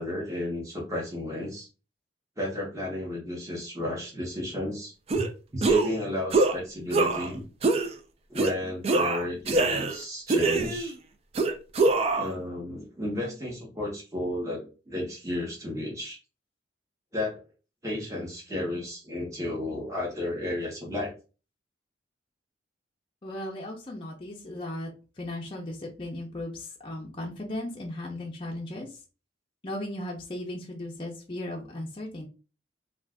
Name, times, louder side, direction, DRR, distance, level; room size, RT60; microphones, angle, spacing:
voice 1, 0.0-1.7 2.4-5.3 5.5-7.4 8.3-11.0 12.1-16.2 17.1-17.4 17.8-21.1, left 1 dB, 15° right, -3 dB, 1.0 m, -33 dB
sound 1, 5.1-5.3 5.6-6.0 6.3-6.6 6.9-7.3 7.6-7.9 8.4-8.5 8.8-10.0 10.3-10.9 11.3-12.3, right 3 dB, 30° right, 0.3 m, -24 dB
voice 2, 23.2-24.9 25.2-29.0 29.6-32.3, left 1 dB, 25° left, -2 dB, 0.5 m, -36 dB
2.4 x 2.4 x 3.4 m, 0.33 s
head